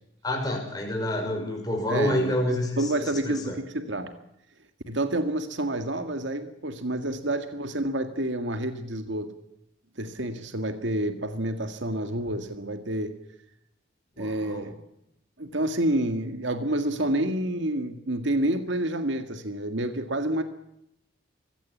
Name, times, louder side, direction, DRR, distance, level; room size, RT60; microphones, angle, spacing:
voice 1, 0.2-2.8 3.2-3.6 14.2-14.7, left 1 dB, 20° left, 1 dB, 6.1 m, -28 dB
voice 2, 1.9-4.1 4.9-9.3 10.0-13.1 14.2-14.7 15.4-20.4, right 1 dB, 70° right, 7 dB, 1.9 m, -29 dB
24.0 x 16.5 x 8.4 m, 0.81 s
head